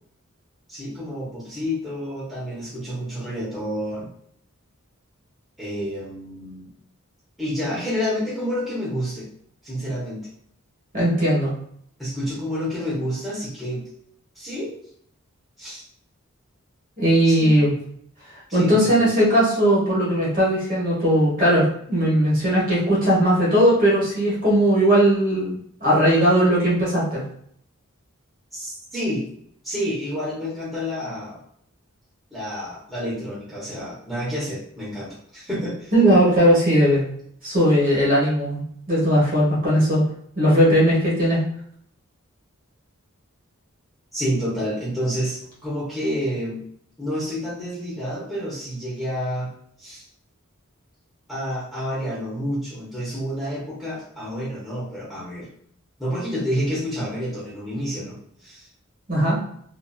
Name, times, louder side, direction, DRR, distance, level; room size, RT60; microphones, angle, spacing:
voice 1, 0.7-4.1 5.6-6.7 7.4-9.3 9.6-10.2 12.0-13.8 14.3-14.7 15.6-15.8 17.2-17.5 18.5-19.1 28.5-29.2 29.6-31.4 32.3-35.9 44.1-46.6 47.0-49.5 49.8-50.0 51.3-55.5 56.0-58.7, equal, ahead, -10 dB, 0.9 m, -29 dB
voice 2, 10.9-11.5 17.0-17.7 18.5-27.2 35.9-37.1 37.4-38.6 38.9-40.0 40.4-41.4 59.1-59.4, equal, 40° right, -6 dB, 1.2 m, -18 dB
2.7 x 2.5 x 2.3 m, 0.65 s
head